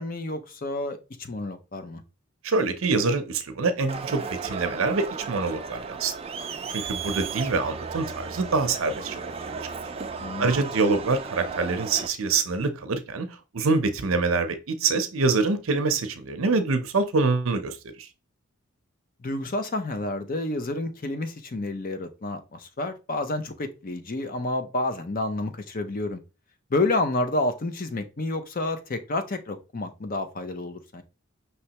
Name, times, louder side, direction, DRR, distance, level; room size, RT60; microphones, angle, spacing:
voice 1, 0.0-2.0 10.2-10.6 19.2-26.2 26.7-31.0, left 2 dB, 40° left, 0.6 m, -29 dB
voice 2, 2.4-6.1 6.7-9.3 10.4-13.3 13.5-18.1, right 3 dB, 70° right, 0.6 m, -25 dB
Crowd, 3.9-12.1, right 5 dB, 30° right, 0.4 m, -35 dB
5.6 x 3.2 x 2.9 m
head